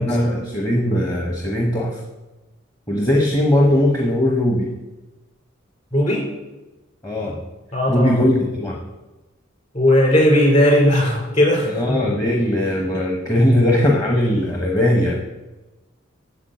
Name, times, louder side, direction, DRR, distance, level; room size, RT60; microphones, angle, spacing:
voice 1, 0.0-2.0 2.9-4.7 7.0-7.4 7.9-8.8 11.7-15.2, left 1 dB, 20° left, -1 dB, 1.0 m, -19 dB
voice 2, 5.9-6.3 7.7-8.1 9.7-12.0, left 1 dB, 35° left, 0 dB, 3.5 m, -17 dB
8.5 x 7.2 x 7.8 m, 1.1 s
head